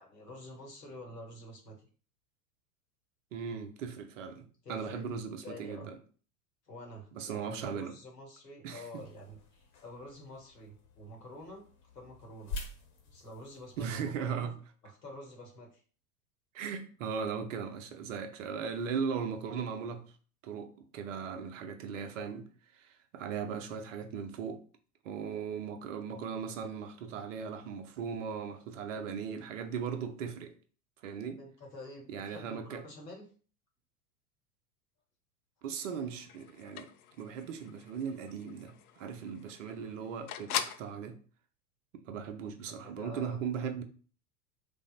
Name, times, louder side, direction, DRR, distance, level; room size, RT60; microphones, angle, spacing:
voice 1, 0.0-1.9 4.6-5.9 6.7-12.6 13.0-14.5 14.8-15.8 31.4-33.3 42.7-43.4, left 1 dB, 85° left, 1.2 m, -48 dB
voice 2, 3.3-4.4 4.7-6.0 7.1-7.9 8.6-8.8 13.8-14.5 16.5-20.0 20.4-22.5 22.7-24.6 25.0-30.5 31.0-31.4 32.1-32.8 35.6-36.9 37.2-41.2 41.9-43.8, right 6 dB, 50° right, 0.6 m, -38 dB
sound 1, 8.9-14.3, left 2 dB, 50° left, 1.0 m, -47 dB
sound 2, 35.8-40.9, left 9 dB, 65° left, 0.5 m, -42 dB
3.4 x 2.0 x 3.8 m
figure-of-eight pair, 85°, 47 cm